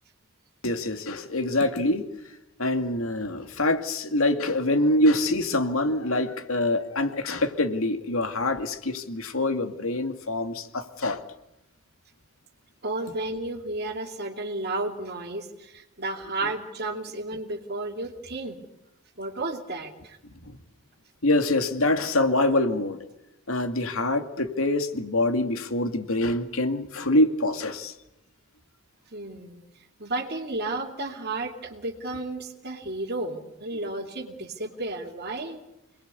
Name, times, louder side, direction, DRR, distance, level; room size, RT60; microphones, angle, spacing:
voice 1, 0.6-2.0 2.6-11.2 20.5-20.6 21.2-23.0 23.5-27.9, left 1 dB, 80° left, 7 dB, 2.4 m, -25 dB
voice 2, 12.8-18.6 19.2-20.2 29.1-29.6 30.0-35.6, right 2 dB, 50° right, 3 dB, 2.6 m, -32 dB
27.0 x 21.0 x 8.4 m, 0.88 s
head